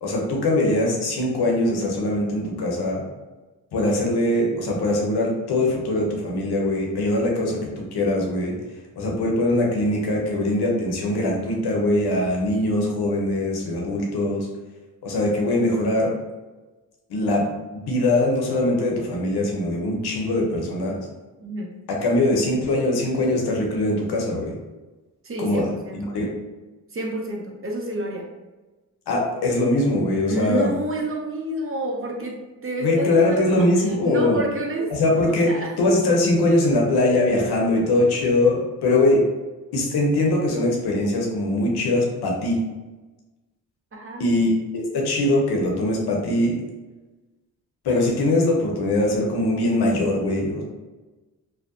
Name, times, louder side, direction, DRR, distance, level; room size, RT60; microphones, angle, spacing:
voice 1, 0.0-3.0 3.7-8.5 9.0-14.5 15.0-16.1 17.1-17.4 17.7-21.0 21.9-24.5 25.4-26.3 29.1-30.7 32.8-34.4 34.9-39.2 39.7-42.6 44.2-46.6 47.8-50.6, left 1 dB, 80° left, -1 dB, 0.7 m, -22 dB
voice 2, 21.4-21.7 25.2-26.1 26.9-28.2 30.3-35.8 43.9-44.3, right 1 dB, 35° right, 0 dB, 0.6 m, -29 dB
2.6 x 2.1 x 2.5 m, 1.2 s
supercardioid pair, 40°, 38 cm